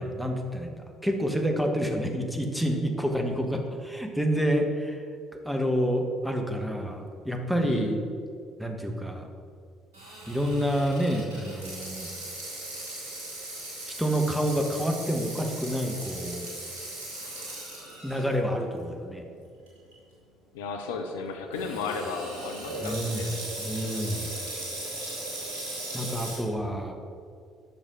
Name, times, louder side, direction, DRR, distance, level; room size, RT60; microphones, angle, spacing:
voice 1, 0.0-5.0 5.4-8.0 8.6-9.3 10.3-12.1 14.0-16.5 18.0-19.2 22.8-23.2 23.6-24.3 25.9-26.9, equal, ahead, 3 dB, 1.3 m, -28 dB
voice 2, 7.6-8.0 20.5-23.3, left 4 dB, 70° left, 5 dB, 0.7 m, -34 dB
Water tap faucet / Sink (filling or washing), 9.9-18.3 18.8-18.9 19.7-19.9 21.5-26.4, right 1 dB, 75° right, 2.2 m, -38 dB
9.1 x 6.4 x 5.1 m, 2.3 s
figure-of-eight pair, 50°, 0 cm